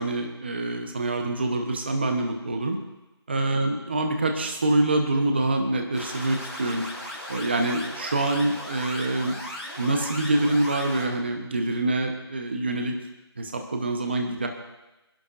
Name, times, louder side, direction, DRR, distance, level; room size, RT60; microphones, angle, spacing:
voice 1, 0.0-2.8 3.3-6.8 7.3-9.4 9.8-13.0 13.4-14.5, right 2 dB, 25° right, 4 dB, 1.0 m, -25 dB
sound 1, 5.9-11.0, left 1 dB, ahead, 2.1 m, -37 dB
27.5 x 11.0 x 2.6 m, 1.0 s
figure-of-eight pair, 175°, 14 cm